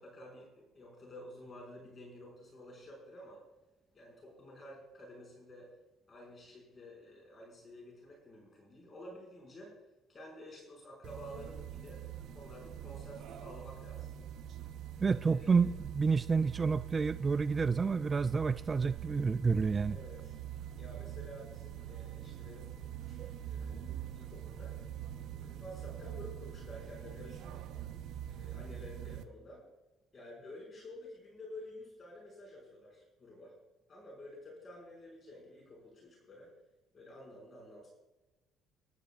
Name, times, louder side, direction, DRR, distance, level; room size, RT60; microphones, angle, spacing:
voice 1, 0.0-3.4 3.9-5.7 6.1-9.8 10.1-14.1 15.0-15.6 19.9-20.4 20.8-24.8 25.3-27.7 28.3-29.7 30.1-33.5 33.9-36.5 36.9-37.9, left 1 dB, 35° left, 5.7 m, -51 dB
sound 1, 11.0-29.2, right 11 dB, 70° right, 0.8 m, -44 dB
voice 2, 15.0-20.0, right 5 dB, 30° right, 0.3 m, -29 dB
24.5 x 11.5 x 2.5 m
supercardioid pair, 85°, 0 cm